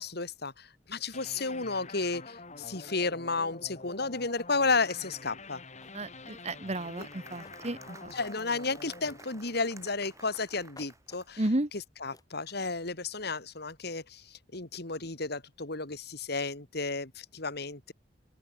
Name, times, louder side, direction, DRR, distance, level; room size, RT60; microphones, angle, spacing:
voice 1, 0.0-5.6 7.0-7.1 8.1-11.4 11.7-17.9, left 3 dB, 55° left, 3.0 m, -33 dB
sound 1, 1.1-10.5, left 3 dB, 40° left, 5.3 m, -48 dB
sound 2, 5.5-5.6 5.8-6.5 7.1-8.2 8.5-9.5 9.8-10.5 10.8-11.7 12.1-12.6, left 2 dB, 20° left, 7.4 m, -58 dB
voice 2, 5.9-8.1 11.4-11.7, right 1 dB, 35° right, 1.6 m, -33 dB
Applause, 6.0-11.5, right 3 dB, 15° right, 3.9 m, -54 dB
open air
head